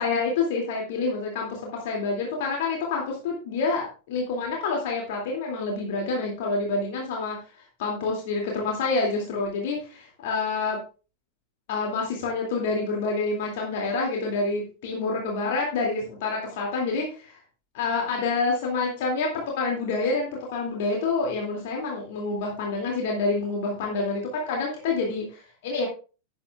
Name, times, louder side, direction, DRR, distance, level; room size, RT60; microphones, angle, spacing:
voice 1, 0.0-7.4 7.8-10.8 11.7-17.4 17.7-25.9, left 3 dB, 50° left, -1 dB, 2.4 m, -27 dB
12.5 x 9.7 x 2.4 m, 0.34 s
figure-of-eight pair, 90°, 0 cm